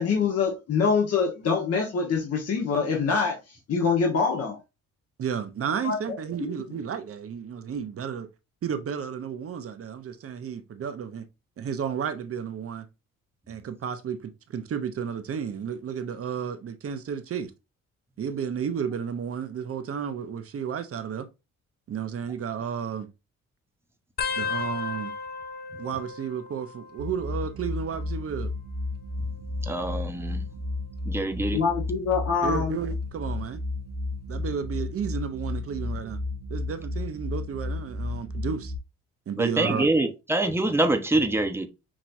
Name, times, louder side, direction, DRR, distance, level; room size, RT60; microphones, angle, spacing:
voice 1, 0.0-4.6 5.8-6.0 6.4-6.6 31.5-32.8, left 5 dB, 55° left, 1.3 m, -25 dB
voice 2, 5.2-8.3 8.6-11.3 11.6-12.9 13.5-17.5 18.2-21.3 21.9-23.1 24.3-25.1 25.8-28.5 32.4-33.6 34.3-36.2 36.5-38.7 39.3-39.9, right 7 dB, 50° right, 0.8 m, -32 dB
sound 1, 24.2-27.4 27.6-28.2 29.2-30.7 31.3-31.7 32.9-33.3 34.8-34.9, left 5 dB, 35° left, 0.6 m, -36 dB
sound 2, 27.0-38.8, left 2 dB, 80° right, 1.0 m, -33 dB
voice 3, 29.7-30.4 31.1-31.6 39.4-41.7, right 2 dB, 10° right, 1.0 m, -25 dB
6.1 x 2.9 x 2.6 m
cardioid pair, 90°, 30 cm